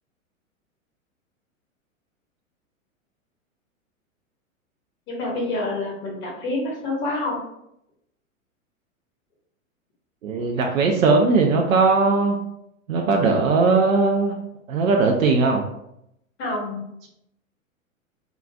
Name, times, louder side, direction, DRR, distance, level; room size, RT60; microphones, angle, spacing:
voice 1, 5.1-7.4 16.4-16.8, left 2 dB, 30° left, -3 dB, 1.2 m, -27 dB
voice 2, 10.2-12.4 12.9-14.4 14.7-15.6, right 4 dB, 75° right, 2 dB, 0.5 m, -19 dB
3.8 x 2.3 x 2.2 m, 0.78 s
figure-of-eight pair, 100°, 41 cm